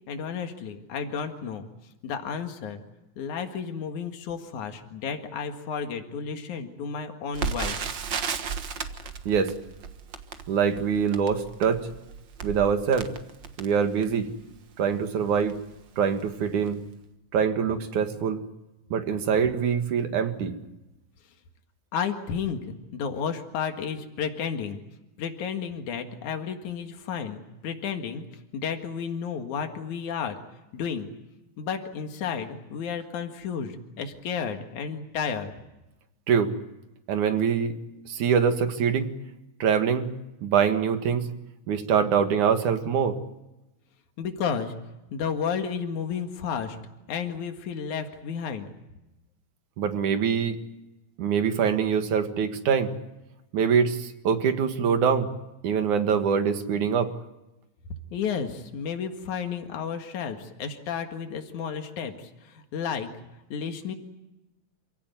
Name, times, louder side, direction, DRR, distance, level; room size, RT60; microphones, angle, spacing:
voice 1, 0.1-1.6 2.0-2.8 3.2-7.9 21.9-24.8 25.2-28.2 28.5-30.4 30.7-31.1 31.6-35.5 44.2-44.7 45.1-46.8 47.1-48.7 58.1-63.1 63.5-63.9, left 6 dB, 80° left, 5 dB, 3.3 m, -32 dB
Crackle, 7.3-14.3 14.9-15.0 15.3-15.6 16.2-16.4 16.7-16.8, right 6 dB, 50° right, 1.6 m, -34 dB
voice 2, 10.5-11.9 12.4-13.1 13.6-14.3 14.8-15.6 16.0-16.8 17.3-18.4 18.9-20.5 36.3-36.5 37.1-37.7 38.1-39.1 39.6-40.1 40.4-41.3 41.7-43.2 49.8-50.6 51.2-52.9 53.5-55.3 55.6-57.1, right 7 dB, 85° right, 7 dB, 3.3 m, -24 dB
28.0 x 17.0 x 9.5 m, 0.97 s
omnidirectional pair, 3.4 m